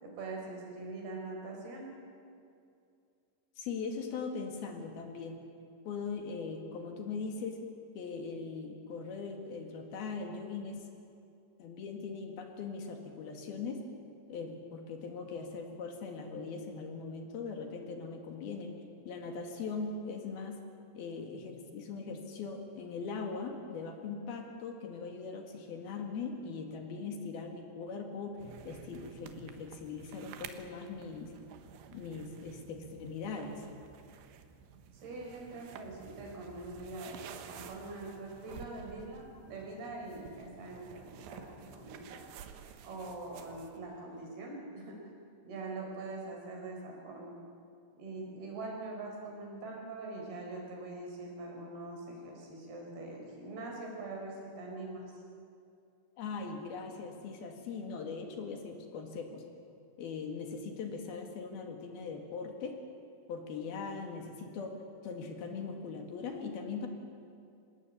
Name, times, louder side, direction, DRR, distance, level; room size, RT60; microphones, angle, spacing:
voice 1, 0.0-1.9 34.9-42.2 42.8-45.1 45.4-47.4 48.0-55.1, right 2 dB, 65° right, 0 dB, 6.2 m, -43 dB
voice 2, 3.6-5.4 5.9-7.6 8.0-10.9 11.6-13.8 14.3-18.8 19.1-20.6 20.9-28.4 28.7-31.3 31.9-33.6 56.2-59.4 60.0-62.8 63.3-64.8 65.0-66.9, left 4 dB, 65° left, 3 dB, 3.8 m, -40 dB
sound 1, 28.4-43.8, right 7 dB, 80° right, 3.4 m, -52 dB
26.0 x 19.5 x 8.7 m, 2.5 s
omnidirectional pair, 4.9 m